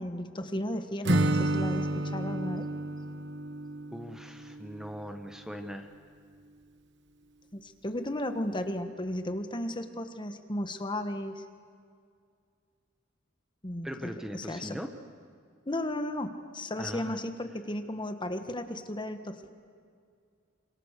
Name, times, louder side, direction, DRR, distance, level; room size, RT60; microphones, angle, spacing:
voice 1, 0.0-2.7 7.5-11.4 13.6-13.9 14.3-14.8 15.7-19.5, left 1 dB, 25° left, 8 dB, 1.4 m, -34 dB
Acoustic guitar / Strum, 1.0-5.0, right 1 dB, 60° right, 1.2 m, -30 dB
voice 2, 3.9-5.9 13.8-14.9 16.8-17.1, equal, 5° right, 5 dB, 1.2 m, -40 dB
28.0 x 26.5 x 6.7 m, 2.2 s
head